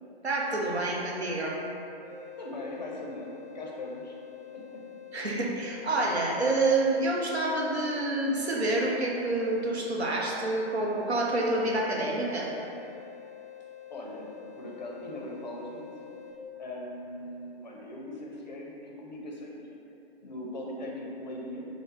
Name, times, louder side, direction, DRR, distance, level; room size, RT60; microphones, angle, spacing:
voice 1, 0.2-1.6 5.1-12.5, right 2 dB, 80° right, -2 dB, 0.6 m, -28 dB
sound 1, 2.0-16.3, left 10 dB, 10° right, 0.8 m, -47 dB
voice 2, 2.4-4.2 4.5-4.8 13.9-14.3 14.6-16.2 16.6-19.9 20.2-21.7, left 1 dB, 45° left, -2 dB, 0.5 m, -40 dB
3.1 x 2.0 x 3.5 m, 2.7 s
figure-of-eight pair, 130°, 32 cm